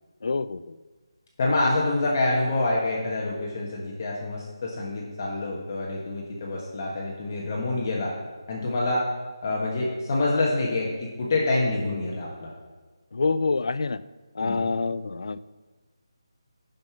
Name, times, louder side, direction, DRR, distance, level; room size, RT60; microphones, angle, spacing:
voice 1, 0.2-0.8 13.1-14.0 14.3-15.4, left 4 dB, 65° left, 16 dB, 0.4 m, -26 dB
voice 2, 1.4-8.1 8.5-9.1 9.4-12.5 14.4-14.7, left 2 dB, 35° left, -3 dB, 1.4 m, -26 dB
10.5 x 5.4 x 5.8 m, 1.3 s
figure-of-eight pair, 165°, 3 cm